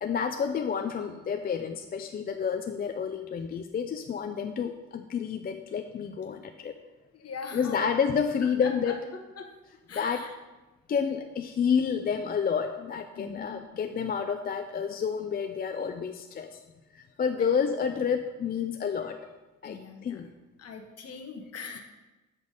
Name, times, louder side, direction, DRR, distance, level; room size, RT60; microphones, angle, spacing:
voice 1, 0.0-6.7 7.5-9.0 10.0-10.2 10.9-16.5 16.9-19.2 19.6-20.3, left 6 dB, 30° left, 6 dB, 0.4 m, -29 dB
voice 2, 7.1-7.9 8.6-9.5 9.9-10.3 13.1-13.7 17.4-17.7 19.6-20.2 20.6-21.8, left 5 dB, 55° left, 4 dB, 1.1 m, -41 dB
7.9 x 3.5 x 5.4 m, 1.1 s
cardioid pair, 90°, 30 cm